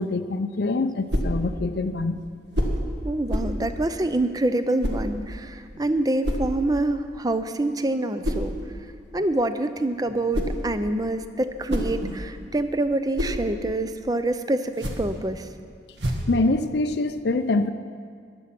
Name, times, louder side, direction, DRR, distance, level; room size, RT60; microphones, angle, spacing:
voice 1, 0.0-2.2 16.3-17.7, left 2 dB, 65° left, 8 dB, 0.5 m, -24 dB
sound 1, 1.1-1.4 2.5-2.8 3.3-3.6 4.8-5.1 6.2-6.5 8.2-8.5 10.1-10.7 11.4-12.4 12.8-13.4 14.6-15.2 16.0-16.4, equal, 75° right, 1.7 m, -27 dB
voice 2, 3.0-8.6 9.1-15.5, right 2 dB, 20° right, 10 dB, 0.5 m, -26 dB
15.0 x 11.0 x 5.9 m, 2.1 s
head